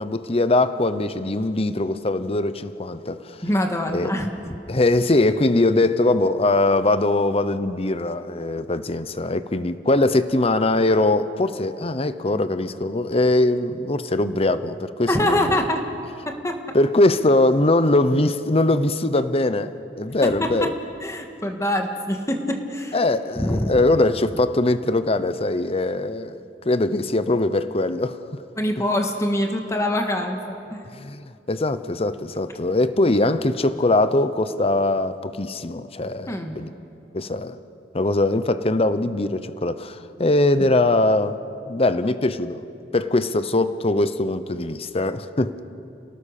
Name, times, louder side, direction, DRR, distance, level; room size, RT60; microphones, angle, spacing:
voice 1, 0.0-3.4 3.9-4.1 4.7-15.6 16.7-20.7 22.9-26.4 26.6-28.4 30.9-36.7 37.1-37.6 37.9-41.4 41.7-42.6 42.9-45.8, left 2 dB, 35° left, 0.8 m, -21 dB
voice 2, 3.4-4.3 15.1-15.8 16.2-16.8 20.2-20.7 21.0-23.0 23.3-23.8 28.5-30.8 36.3-36.5, left 1 dB, 15° left, 1.7 m, -24 dB
29.5 x 18.0 x 6.6 m
head